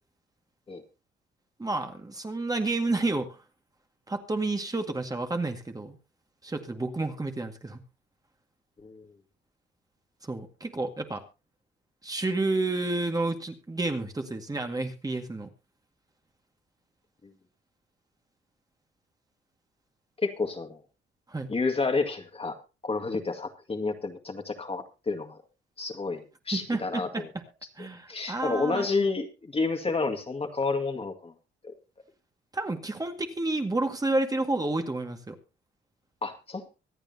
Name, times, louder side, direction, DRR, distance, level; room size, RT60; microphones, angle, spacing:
voice 1, 1.6-3.3 4.1-6.0 6.4-7.8 10.2-11.2 12.0-15.5 21.3-21.5 26.5-27.2 27.8-28.9 32.5-35.3, right 2 dB, 20° right, 5 dB, 2.0 m, -30 dB
voice 2, 20.2-20.8 21.5-22.6 22.8-25.4 25.8-27.3 28.1-31.3 31.6-31.7 36.2-36.7, left 3 dB, 30° left, 5 dB, 2.0 m, -30 dB
25.0 x 8.7 x 2.8 m, 0.30 s
cardioid pair, 90°, 20 cm